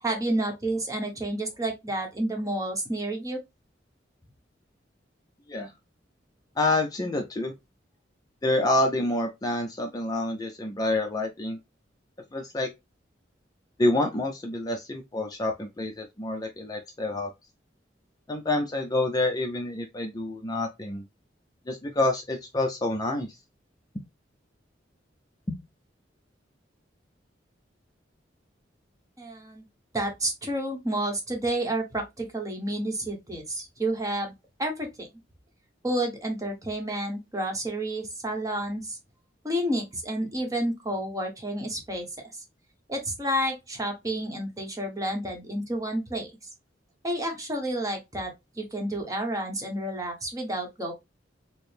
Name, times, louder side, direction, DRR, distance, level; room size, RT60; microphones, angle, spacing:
voice 1, 0.0-3.4 29.2-29.6 29.9-34.3 34.6-35.1 35.8-39.0 39.4-42.4 42.9-46.3 47.0-50.9, right 1 dB, 20° right, 0.9 m, -30 dB
voice 2, 6.6-7.5 8.4-11.6 12.3-12.7 13.8-17.3 18.3-21.0 21.7-23.4 25.5-25.6, left 2 dB, 20° left, 0.4 m, -27 dB
4.3 x 2.0 x 3.2 m
head